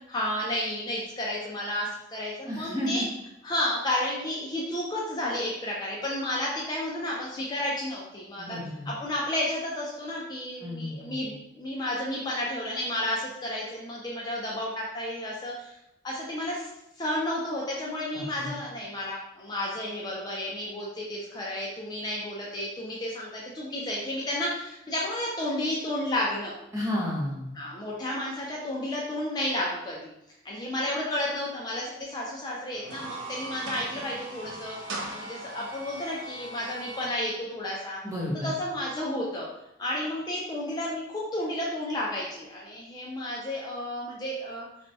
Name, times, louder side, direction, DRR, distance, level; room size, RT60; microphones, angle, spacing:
voice 1, 0.0-3.0 3.4-8.6 8.9-15.7 16.0-16.7 17.0-26.6 27.6-30.1 30.4-34.8 35.1-38.0 38.4-39.5 39.8-44.7, left 1 dB, 20° left, -4 dB, 0.4 m, -32 dB
voice 2, 2.5-3.0 8.4-8.9 10.6-11.3 18.1-18.6 26.7-27.5 38.0-38.5, left 1 dB, 15° right, -4 dB, 0.7 m, -32 dB
sound 1, 32.7-37.1, right 1 dB, 75° right, 0.5 m, -39 dB
4.2 x 2.2 x 2.6 m, 0.83 s
head